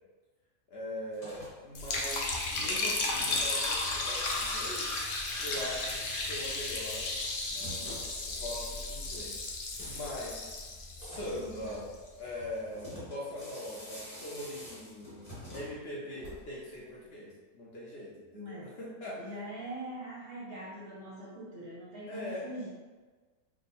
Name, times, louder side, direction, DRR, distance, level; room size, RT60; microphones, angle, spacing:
voice 1, 0.7-5.0 5.4-7.0 7.5-9.4 9.8-10.5 11.0-11.9 12.2-15.2 15.5-19.4 22.1-22.4, left 1 dB, 55° left, -6 dB, 0.8 m, -41 dB
sound 1, 1.0-16.7, equal, 25° left, 1.5 m, -48 dB
Liquid, 1.7-11.9, left 2 dB, 75° left, 0.5 m, -34 dB
voice 2, 18.3-18.7 19.2-22.7, right 1 dB, 50° right, -6 dB, 0.8 m, -42 dB
3.5 x 2.2 x 4.1 m, 1.4 s
omnidirectional pair, 1.5 m